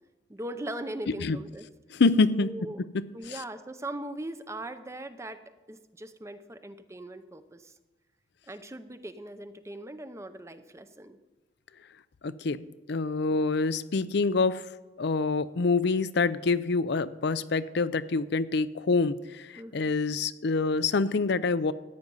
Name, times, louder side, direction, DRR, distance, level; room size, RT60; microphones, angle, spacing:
voice 1, 0.3-1.6 2.3-2.8 3.1-5.4 5.7-7.7 8.5-11.2 13.3-13.4 19.6-19.9, right 1 dB, 15° right, 10 dB, 0.7 m, -40 dB
voice 2, 1.9-2.5 3.3-3.4 12.2-14.6 15.0-21.7, left 4 dB, 65° left, 15 dB, 0.5 m, -26 dB
14.0 x 9.4 x 5.5 m, 1.1 s
head